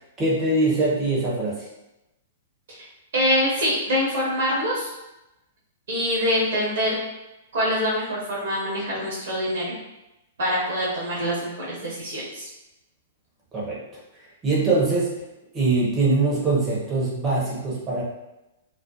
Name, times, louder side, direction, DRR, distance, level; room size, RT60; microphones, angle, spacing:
voice 1, 0.2-1.6 13.5-13.8 14.4-15.1 15.5-18.0, right 3 dB, 20° right, -5 dB, 0.8 m, -22 dB
voice 2, 3.1-4.9 5.9-6.9 7.5-9.8 10.4-12.5, equal, 60° right, -6 dB, 0.8 m, -24 dB
2.3 x 2.0 x 2.7 m, 0.95 s
figure-of-eight pair, 105°, 0 cm